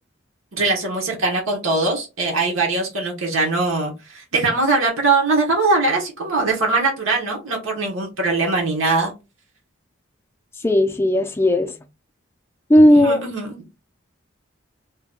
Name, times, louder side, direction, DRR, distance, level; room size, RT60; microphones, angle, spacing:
voice 1, 0.5-9.1 12.9-13.6, right 3 dB, 75° right, 0.9 m, -21 dB
voice 2, 10.6-11.7 12.7-13.2, left 1 dB, 10° left, 0.3 m, -15 dB
2.8 x 2.1 x 3.6 m
head